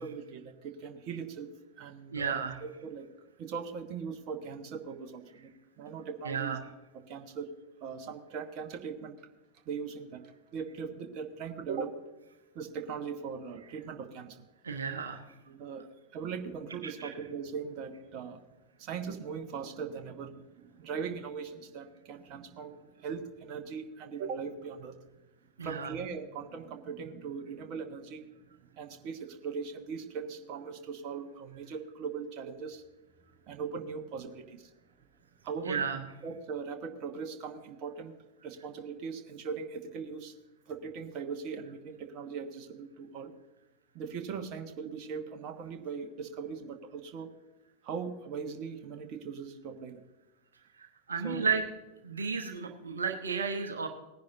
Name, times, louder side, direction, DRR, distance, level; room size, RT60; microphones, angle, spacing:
voice 1, 0.0-1.5 1.8-2.3 2.6-3.1 3.4-5.5 5.8-6.5 6.9-7.5 7.8-9.3 9.7-10.2 10.5-12.0 12.5-14.4 15.5-15.8 16.1-18.4 18.8-25.0 25.6-28.3 28.6-32.8 33.4-34.7 35.4-35.8 36.2-38.1 38.4-40.3 40.7-43.3 43.9-47.3 47.8-50.0 51.2-51.4, right 6 dB, 40° right, 6 dB, 1.3 m, -40 dB
voice 2, 2.1-2.6 6.2-6.6 14.6-15.2 16.8-17.1 25.6-25.9 35.6-36.0 50.8-51.6 52.0-53.9, right 5 dB, 70° right, 5 dB, 1.0 m, -33 dB
19.0 x 10.5 x 2.7 m, 1.0 s
figure-of-eight pair, 90°, 0 cm